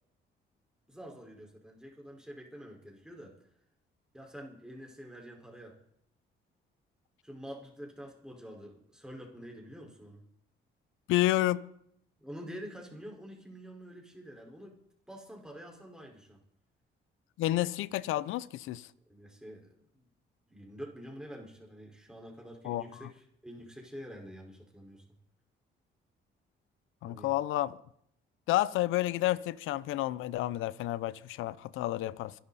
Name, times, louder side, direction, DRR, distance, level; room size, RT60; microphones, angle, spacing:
voice 1, 0.9-3.3 4.1-5.7 7.2-10.2 12.2-14.8 15.1-16.4 19.1-20.1 20.5-25.0 27.0-27.3, equal, 5° right, 4.8 m, -47 dB
voice 2, 11.1-11.7 17.4-18.9 22.6-23.1 27.0-27.8 28.5-32.3, left 15 dB, 90° left, 0.6 m, -30 dB
25.5 x 11.5 x 4.2 m
cardioid pair, 90°, 20 cm